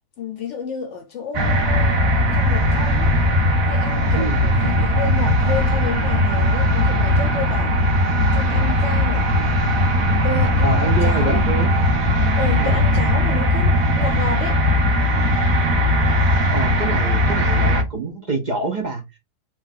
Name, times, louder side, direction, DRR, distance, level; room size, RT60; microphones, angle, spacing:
voice 1, 0.2-2.0 2.3-3.2 3.6-7.8 8.3-9.3 10.2-11.4 12.4-14.6, left 5 dB, 65° left, 0.9 m, -30 dB
sound 1, 1.3-17.8, left 1 dB, 85° right, 1.4 m, -18 dB
voice 2, 10.6-11.7 12.6-12.8 16.5-19.0, right 2 dB, 35° right, 1.0 m, -26 dB
3.2 x 3.0 x 3.9 m
omnidirectional pair, 1.4 m